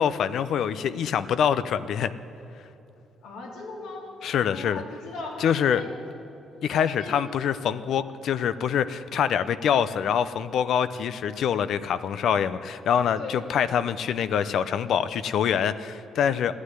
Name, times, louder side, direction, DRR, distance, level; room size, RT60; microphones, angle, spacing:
voice 1, 0.0-2.1 4.2-4.8 5.4-5.8 6.6-16.5, left 8 dB, 70° left, 13 dB, 0.6 m, -25 dB
voice 2, 3.2-4.1 4.5-6.0 6.6-7.4 13.2-13.4, left 3 dB, 90° left, -2 dB, 3.4 m, -39 dB
15.0 x 9.7 x 9.8 m, 2.9 s
cardioid pair, 90°, 0 cm